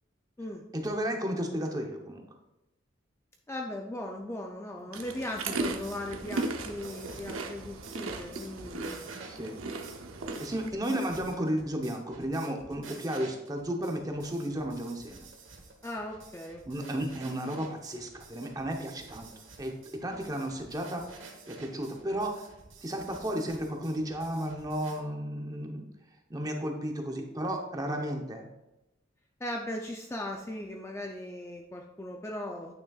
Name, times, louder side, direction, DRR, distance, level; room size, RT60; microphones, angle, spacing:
voice 1, 0.7-2.3 9.3-9.6 10.4-15.3 16.7-19.3 19.6-21.2 21.5-22.5 22.8-25.8 26.3-28.5, right 1 dB, 20° right, 3 dB, 0.8 m, -33 dB
voice 2, 3.5-9.1 10.9-11.2 15.8-17.1 29.4-32.7, left 1 dB, 15° left, 2 dB, 0.4 m, -38 dB
sound 1, 4.9-10.7, right 3 dB, 85° right, 0.7 m, -37 dB
sound 2, 5.6-25.0, right 3 dB, 65° right, 1.2 m, -50 dB
9.0 x 6.1 x 2.4 m, 0.94 s
head